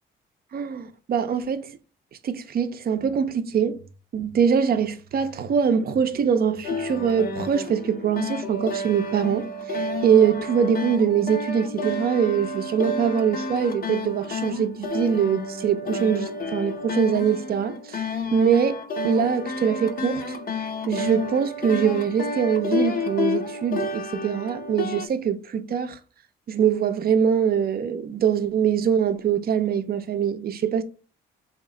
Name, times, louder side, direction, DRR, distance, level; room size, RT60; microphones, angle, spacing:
voice 1, 0.5-1.7 2.2-3.8 4.1-20.4 20.9-26.0 26.5-30.8, right 7 dB, 50° right, 0.5 m, -23 dB
sound 1, 6.6-25.1, left 3 dB, 45° left, 0.6 m, -30 dB
3.1 x 2.9 x 3.7 m
cardioid pair, 90°, 20 cm